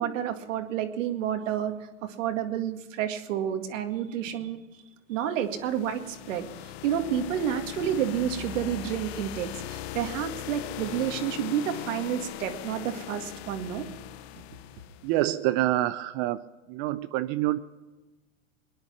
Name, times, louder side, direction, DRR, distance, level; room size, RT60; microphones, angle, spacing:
voice 1, 0.0-1.8 2.0-4.6 5.1-6.5 6.8-13.9 14.4-14.5, right 9 dB, 65° right, 6 dB, 2.1 m, -30 dB
sound 1, 5.4-15.2, left 14 dB, 50° left, 0.7 m, -40 dB
voice 2, 15.0-16.4 16.7-17.6, right 15 dB, 30° right, 13 dB, 0.4 m, -26 dB
22.0 x 10.5 x 6.0 m, 1.2 s
hypercardioid pair, 125°, 41 cm